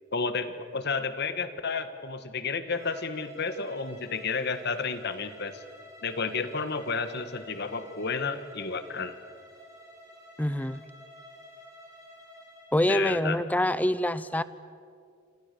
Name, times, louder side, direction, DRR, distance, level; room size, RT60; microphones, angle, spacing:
voice 1, 0.1-5.6 6.0-9.1 12.9-13.4, left 4 dB, 55° left, 10 dB, 1.5 m, -31 dB
Bowed string instrument, 2.6-12.7, equal, 20° right, 6.8 m, -50 dB
voice 2, 10.4-10.8 12.7-14.4, left 1 dB, 10° left, 15 dB, 0.7 m, -26 dB
27.0 x 26.5 x 6.9 m, 2.3 s
head